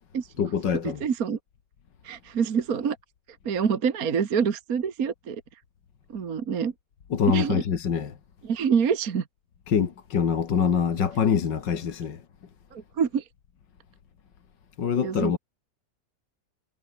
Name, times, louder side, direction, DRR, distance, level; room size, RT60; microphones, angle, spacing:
voice 1, 0.4-1.0 7.1-8.1 9.7-12.2 14.8-15.4, left 7 dB, 75° left, 2.4 m, -25 dB
voice 2, 1.0-1.4 2.0-3.0 3.5-5.4 6.1-6.7 7.3-7.6 8.4-9.2 12.7-13.2 15.0-15.4, right 7 dB, 55° right, 1.9 m, -26 dB
omnidirectional pair, 2.0 m